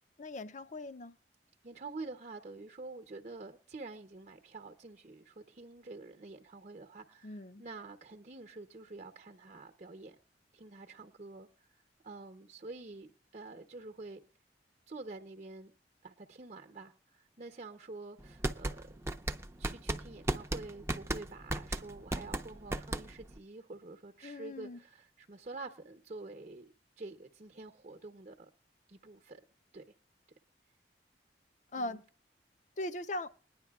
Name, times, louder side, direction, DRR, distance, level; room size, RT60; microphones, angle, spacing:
voice 1, 0.2-1.1 7.2-7.6 24.2-24.8 31.7-32.0 32.8-33.3, left 1 dB, 45° left, 0.5 m, -40 dB
voice 2, 1.6-10.2 10.5-11.5 12.0-14.2 14.9-15.7 16.0-19.0 19.6-28.5 28.9-29.4 29.7-29.9 31.8-32.0, right 3 dB, 40° right, 0.9 m, -48 dB
sound 1, 18.2-23.4, right 1 dB, 15° right, 0.6 m, -35 dB
21.0 x 10.5 x 2.4 m
head